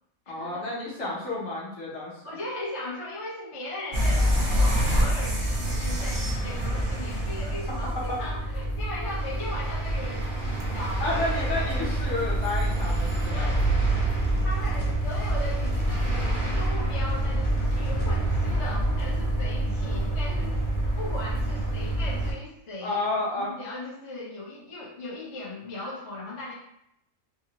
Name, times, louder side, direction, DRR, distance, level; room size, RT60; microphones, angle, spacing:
voice 1, 0.3-2.2 7.9-8.2 11.0-13.8 22.8-23.5, left 2 dB, 60° left, -6 dB, 1.2 m, -31 dB
voice 2, 2.2-11.2 13.3-13.6 14.4-20.7 21.0-26.5, left 1 dB, 35° left, -6 dB, 0.6 m, -38 dB
sound 1, 3.9-22.3, right 1 dB, 50° right, 0.7 m, -27 dB
sound 2, 10.5-20.8, right 2 dB, 85° left, 1.1 m, -34 dB
3.5 x 2.0 x 2.8 m, 0.79 s
omnidirectional pair, 1.5 m